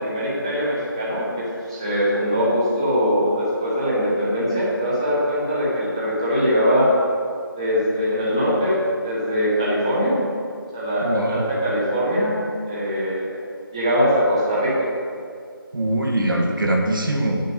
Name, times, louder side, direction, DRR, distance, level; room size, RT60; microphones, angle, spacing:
voice 1, 0.0-6.9 7.6-10.1 10.7-12.4 12.6-13.4 13.7-14.9, equal, 15° right, -8 dB, 1.1 m, -22 dB
voice 2, 11.0-11.5 15.7-17.4, right 1 dB, 60° right, 0 dB, 1.8 m, -22 dB
9.7 x 6.6 x 6.4 m, 2.3 s
figure-of-eight pair, 175°, 12 cm